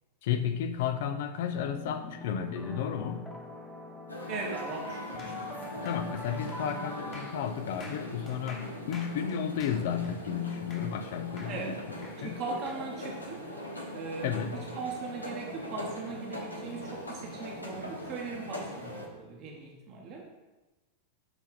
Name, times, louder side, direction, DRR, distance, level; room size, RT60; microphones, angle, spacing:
voice 1, 0.2-3.3 5.8-11.8 12.2-12.4 14.2-14.5, left 8 dB, 55° left, 9 dB, 0.5 m, -32 dB
sound 1, 1.5-8.5, left 2 dB, 10° left, 0.8 m, -44 dB
sound 2, 4.1-19.1, equal, 85° left, 0.8 m, -41 dB
voice 2, 4.3-5.8 11.5-11.8 12.2-13.5 13.9-20.3, right 4 dB, 40° right, 1 dB, 1.0 m, -39 dB
sound 3, 5.2-11.1 11.4-12.8, left 2 dB, 30° left, 1.3 m, -49 dB
6.2 x 3.4 x 4.7 m, 1.1 s
figure-of-eight pair, 90°, 0 cm